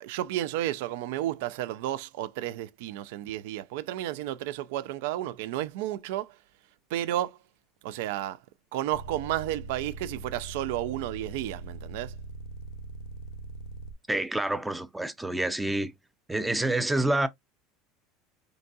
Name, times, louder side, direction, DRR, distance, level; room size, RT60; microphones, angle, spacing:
voice 1, 0.0-6.4 6.9-7.4 7.8-8.4 8.7-12.1, right 13 dB, 75° right, 0.4 m, -32 dB
sound 1, 8.9-13.9, right 3 dB, 70° left, 0.6 m, -41 dB
voice 2, 14.1-15.9 16.3-17.3, right 2 dB, 5° right, 0.4 m, -27 dB
4.6 x 3.9 x 2.3 m
cardioid pair, 155°, 0 cm